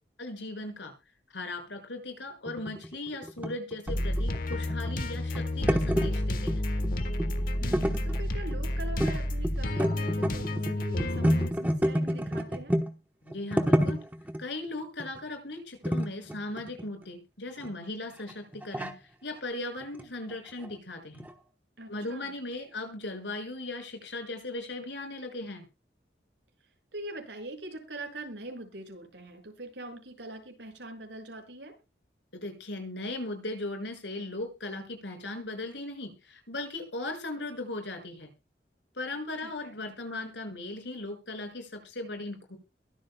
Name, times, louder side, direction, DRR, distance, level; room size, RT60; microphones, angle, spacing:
voice 1, 0.2-0.9 1.3-6.7 13.2-14.0 14.4-21.3 21.9-25.7 32.3-38.3 38.9-42.6, left 2 dB, 85° left, 4 dB, 6.3 m, -38 dB
sound 1, 2.5-6.6 6.8-7.4 7.7-8.7 9.0-9.2 9.4-12.9 13.3-14.4 15.0-15.2 15.8-17.0 17.6-17.7 18.3-18.9 19.8-20.0 20.3-20.4 20.6-20.7 21.1-21.3, equal, 10° right, 1.1 m, -29 dB
sound 2, 3.9-11.5, left 1 dB, 50° left, 1.3 m, -30 dB
voice 2, 7.6-12.8 21.8-22.3 26.9-31.8 39.4-39.7, right 1 dB, 85° right, 3 dB, 6.4 m, -43 dB
22.5 x 8.3 x 2.3 m, 0.28 s
head